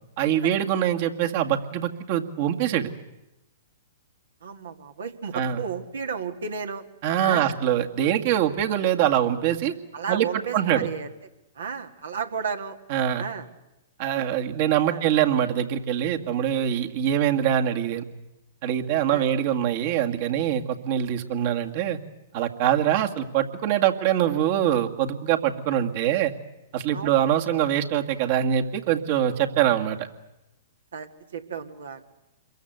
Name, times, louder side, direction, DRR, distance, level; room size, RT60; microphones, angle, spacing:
voice 1, 0.2-2.9 5.3-5.6 7.0-9.7 10.1-10.3 10.5-10.9 12.9-13.2 14.0-18.0 18.6-22.0 22.3-26.3 26.7-30.0, right 10 dB, 50° right, 5 dB, 2.1 m, -24 dB
voice 2, 4.4-6.8 7.2-7.6 9.9-11.1 11.6-12.8 13.2-13.5 14.9-15.0 19.1-19.3 26.9-27.1 30.9-32.0, right 6 dB, 75° right, 6 dB, 2.1 m, -33 dB
27.5 x 22.5 x 8.1 m, 0.95 s
hypercardioid pair, 115°, 0 cm